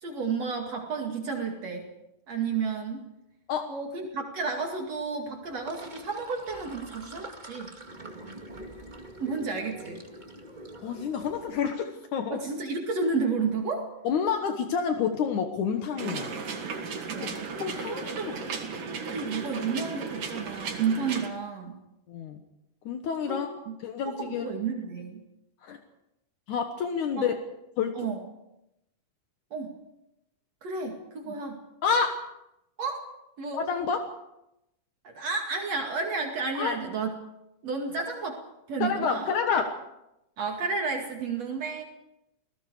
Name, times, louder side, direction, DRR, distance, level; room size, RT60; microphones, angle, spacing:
voice 1, 0.0-1.9 2.3-3.1 3.7-7.7 9.2-10.0 12.3-13.9 17.0-17.3 17.9-18.3 19.1-21.8 23.3-23.8 24.1-25.2 27.1-27.3 28.0-28.2 29.5-29.7 30.6-31.6 32.8-33.1 33.4-33.7 35.0-37.1 37.6-38.4 38.7-39.3 40.4-41.8, right 4 dB, 55° right, 1 dB, 3.3 m, -31 dB
Sink (filling or washing), 5.4-11.7, right 1 dB, 15° right, 1.7 m, -45 dB
voice 2, 10.8-12.4 14.0-16.3 17.2-17.3 17.6-18.3 22.1-22.4 22.9-23.5 23.8-24.5 25.6-25.8 26.5-27.3 27.8-28.0 31.3-31.4 31.8-32.2 33.5-34.0 36.6-36.8 38.8-39.7, left 6 dB, 70° left, 5 dB, 2.7 m, -28 dB
sound 1, 16.0-21.3, right 5 dB, 85° right, 4.1 m, -35 dB
30.0 x 19.0 x 4.9 m, 0.87 s
omnidirectional pair, 3.7 m